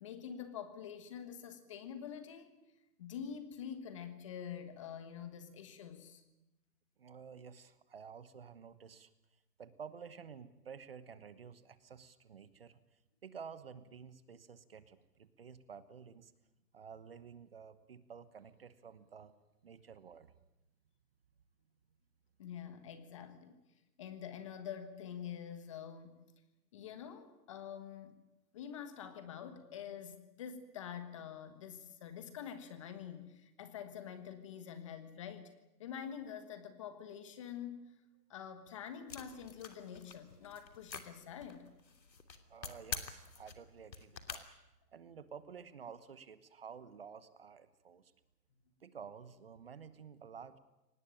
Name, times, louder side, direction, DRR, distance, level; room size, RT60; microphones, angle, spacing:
voice 1, 0.0-2.6 3.0-6.2 22.4-23.6 24.0-26.2 26.7-28.1 28.5-35.4 35.8-37.8 38.3-41.7, left 8 dB, 20° left, 10 dB, 1.4 m, -46 dB
voice 2, 7.0-9.1 9.6-12.8 13.2-16.3 16.7-19.3 19.6-20.3 42.5-44.4 44.9-48.1 48.8-50.6, right 6 dB, 35° right, 14 dB, 1.1 m, -52 dB
sound 1, 39.1-44.4, left 5 dB, 90° left, 3.1 m, -47 dB
24.0 x 19.5 x 8.9 m, 0.95 s
hypercardioid pair, 170°, 50 cm